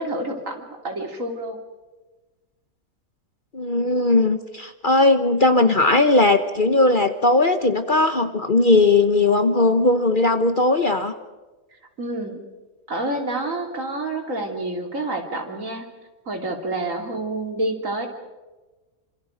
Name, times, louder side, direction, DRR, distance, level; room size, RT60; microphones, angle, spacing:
voice 1, 0.0-1.6 12.0-12.4 12.9-15.8 16.3-18.1, right 2 dB, 60° right, 3 dB, 3.4 m, -28 dB
voice 2, 3.5-11.1, left 2 dB, 40° left, 9 dB, 1.1 m, -18 dB
27.0 x 26.5 x 5.2 m, 1.2 s
omnidirectional pair, 1.5 m